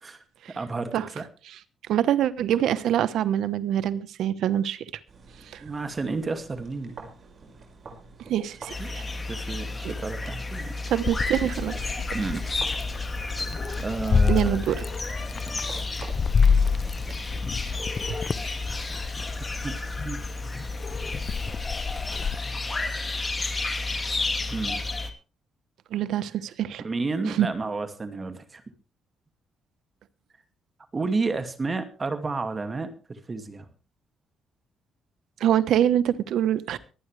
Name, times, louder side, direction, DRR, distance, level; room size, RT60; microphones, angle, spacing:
voice 1, 0.5-1.2 5.6-7.0 8.8-8.9 9.3-10.7 12.1-12.5 13.8-14.6 15.3-15.9 19.6-19.7 20.0-20.2 24.5-24.8 26.8-28.6 30.9-33.7, right 3 dB, 30° right, 2.3 m, -31 dB
voice 2, 1.9-4.8 5.5-5.6 8.3-9.0 9.8-9.9 10.9-11.9 14.3-14.8 18.1-18.2 25.9-26.8 27.3-27.5 35.4-36.8, right 10 dB, 75° right, 1.1 m, -25 dB
sound 1, 5.1-17.9, right 3 dB, 45° right, 5.6 m, -48 dB
sound 2, 8.7-25.1, left 3 dB, 25° left, 2.5 m, -32 dB
Meow, 11.0-22.3, left 5 dB, 40° left, 0.7 m, -28 dB
24.0 x 9.4 x 3.4 m
cardioid pair, 90°, 0 cm